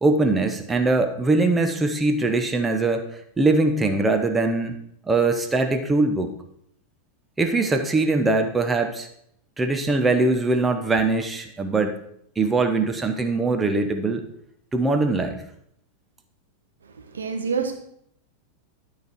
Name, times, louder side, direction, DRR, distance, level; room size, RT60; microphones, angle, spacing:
voice 1, 0.0-3.0 3.4-4.8 5.1-6.3 7.4-9.1 9.6-11.9 12.4-14.2 14.7-15.4, right 3 dB, 10° right, 6 dB, 1.0 m, -22 dB
voice 2, 17.0-17.7, right 5 dB, 70° right, 4 dB, 1.4 m, -27 dB
12.0 x 5.1 x 4.6 m, 0.70 s
figure-of-eight pair, 90°, 0 cm